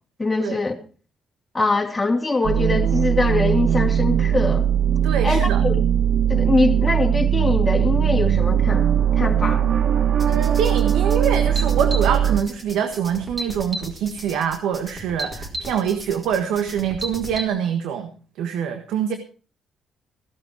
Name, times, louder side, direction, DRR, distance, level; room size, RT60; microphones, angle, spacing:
voice 1, 0.2-0.7 1.5-4.6 5.2-5.7 6.3-8.9 9.2-9.7, left 3 dB, 15° left, -1 dB, 2.9 m, -22 dB
sound 1, 2.4-12.4, right 9 dB, 60° right, 1.3 m, -19 dB
voice 2, 5.0-5.6 10.3-18.1 18.4-19.1, right 8 dB, 90° right, 7 dB, 1.4 m, -25 dB
sound 2, 10.2-17.5, right 1 dB, 20° right, 4.2 m, -34 dB
16.0 x 12.0 x 4.6 m, 0.38 s
cardioid pair, 90°, 0 cm